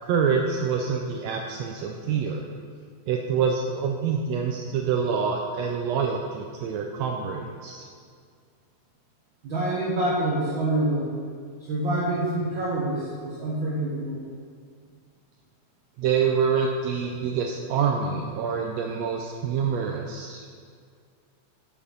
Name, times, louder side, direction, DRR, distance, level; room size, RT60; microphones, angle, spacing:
voice 1, 0.0-2.4 3.1-7.9 16.0-20.6, right 6 dB, 85° right, 1 dB, 1.5 m, -26 dB
voice 2, 9.4-11.1 11.7-14.2, right 1 dB, 60° right, -5 dB, 1.3 m, -26 dB
7.2 x 6.6 x 5.7 m, 2.1 s
omnidirectional pair, 3.6 m